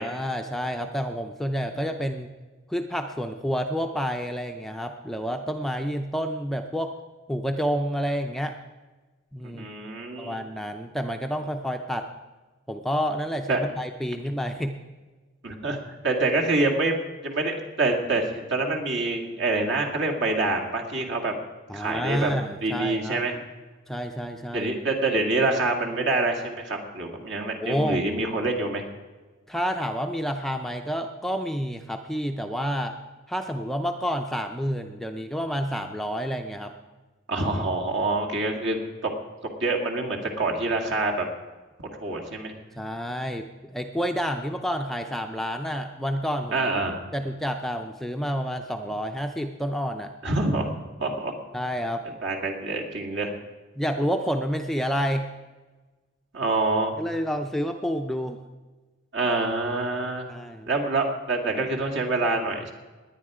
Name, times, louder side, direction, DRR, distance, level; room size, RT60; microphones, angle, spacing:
voice 1, 0.0-2.3 2.7-6.9 7.3-8.6 9.3-9.7 10.2-12.1 12.7-14.8 21.7-23.2 23.9-24.7 27.6-28.1 29.5-33.0 33.3-36.7 42.8-46.7 47.1-50.1 51.5-52.0 53.8-55.3 57.0-58.4 60.3-60.7, equal, ahead, 4 dB, 0.6 m, -29 dB
voice 2, 9.4-10.4 13.5-13.6 15.4-15.8 16.0-17.0 17.2-21.3 21.7-22.3 22.6-23.3 24.5-28.8 37.3-39.1 39.6-41.3 42.0-42.5 46.5-47.0 50.2-51.4 52.2-53.3 56.3-56.9 59.1-60.3 60.7-62.7, right 2 dB, 60° right, 0 dB, 2.3 m, -26 dB
19.5 x 9.9 x 5.0 m, 1.3 s
head